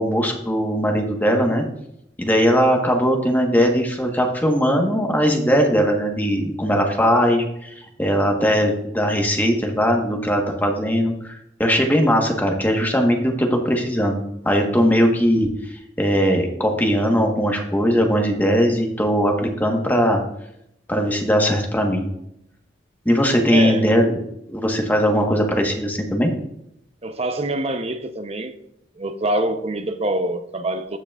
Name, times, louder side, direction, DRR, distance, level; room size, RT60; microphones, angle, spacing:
voice 1, 0.0-1.6 2.2-14.2 14.4-20.2 20.9-22.1 23.0-24.2 24.5-26.3, equal, 10° left, 1.3 m, -19 dB
voice 2, 23.5-23.9 27.0-28.6 29.0-31.0, right 1 dB, 35° right, 0.7 m, -25 dB
16.0 x 5.9 x 2.4 m
head